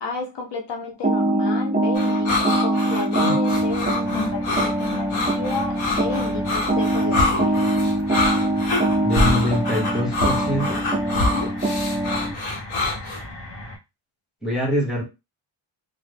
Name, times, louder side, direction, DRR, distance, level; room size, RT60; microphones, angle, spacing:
voice 1, 0.0-7.6 11.1-11.6, left 4 dB, 60° left, 0.6 m, -32 dB
sound 1, 1.0-12.3, right 1 dB, 20° right, 0.3 m, -23 dB
sound 2, 2.0-13.2, left 2 dB, 75° left, 1.0 m, -25 dB
sound 3, 3.5-13.8, left 1 dB, 30° left, 1.1 m, -38 dB
voice 2, 9.0-10.8 14.4-15.0, left 1 dB, ahead, 1.0 m, -24 dB
2.9 x 2.1 x 3.3 m
wide cardioid pair, 155°, 50 cm